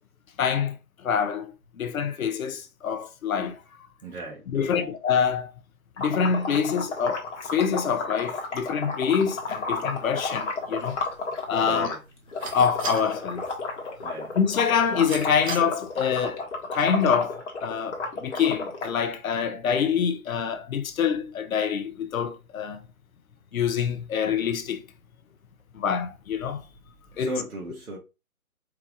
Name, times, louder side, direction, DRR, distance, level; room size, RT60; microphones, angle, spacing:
voice 1, 0.4-0.7 1.0-3.6 4.5-5.5 6.0-11.0 11.5-11.9 12.5-13.5 14.3-16.4 16.7-22.8 23.5-24.8 25.7-26.6 27.2-27.4, left 7 dB, 70° left, 0.8 m, -26 dB
voice 2, 4.0-4.9 11.6-12.0 14.0-14.3 27.1-28.0, right 2 dB, 85° right, 1.4 m, -36 dB
sound 1, 6.0-11.9 12.3-18.9, left 3 dB, 55° left, 1.3 m, -32 dB
sound 2, 9.2-15.6, right 4 dB, 65° right, 1.3 m, -42 dB
4.6 x 2.4 x 3.5 m
hypercardioid pair, 150°, 44 cm